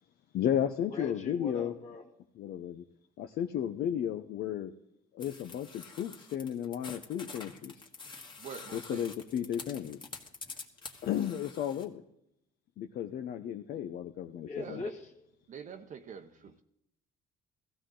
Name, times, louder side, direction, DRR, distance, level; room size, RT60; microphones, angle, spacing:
voice 1, 0.3-1.7 2.4-2.8 3.2-4.7 5.1-7.7 8.7-10.0 11.0-12.0 12.8-14.8, left 9 dB, 65° left, 0.7 m, -33 dB
voice 2, 0.9-2.1 14.5-15.1, left 3 dB, 45° left, 2.1 m, -41 dB
sound 1, 5.2-11.9, left 4 dB, 30° left, 1.7 m, -47 dB
voice 3, 8.4-9.1 14.5-14.9 15.5-16.6, right 6 dB, 50° right, 0.9 m, -45 dB
15.5 x 15.0 x 3.9 m
cardioid pair, 110°, 17 cm